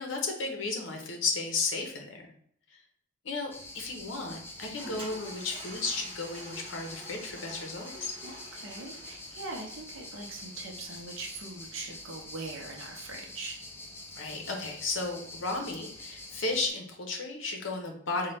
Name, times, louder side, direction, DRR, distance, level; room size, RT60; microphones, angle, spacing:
voice 1, 0.0-2.3 2.7-2.8 3.2-8.1 14.2-18.3, left 3 dB, 60° left, 2 dB, 0.8 m, -34 dB
sound 1, 3.5-16.7, left 2 dB, 10° left, 0.4 m, -46 dB
Toilet flush, 4.3-11.3, equal, 25° right, 1.0 m, -48 dB
voice 2, 8.2-13.6, right 3 dB, 65° right, 0 dB, 0.7 m, -41 dB
3.9 x 2.2 x 3.3 m, 0.66 s
head